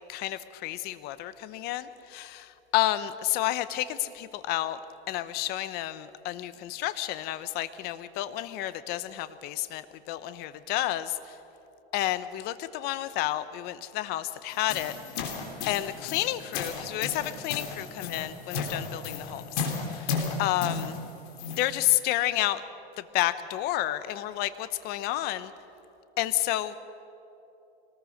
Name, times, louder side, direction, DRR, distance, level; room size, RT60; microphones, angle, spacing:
voice 1, 0.1-4.8 5.1-11.1 11.9-14.9 15.7-19.4 19.9-20.1 20.4-21.0 21.6-22.6 23.1-25.5 26.2-26.7, left 14 dB, 35° left, 14 dB, 0.8 m, -30 dB
sound 1, 14.5-21.7, left 5 dB, 55° left, 3.7 m, -34 dB
24.5 x 19.0 x 6.5 m, 3.0 s
supercardioid pair, 150°, 30 cm